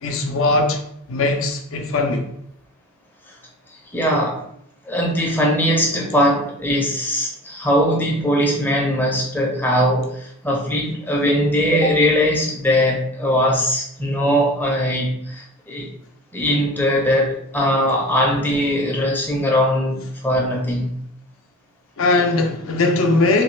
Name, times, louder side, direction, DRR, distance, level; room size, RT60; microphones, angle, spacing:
voice 1, 0.0-0.8 1.1-2.3 22.0-23.4, left 2 dB, 65° left, 0.5 m, -19 dB
voice 2, 3.9-4.4 4.9-15.9 16.3-20.9, equal, 10° left, 0.5 m, -20 dB
3.0 x 2.5 x 3.1 m
head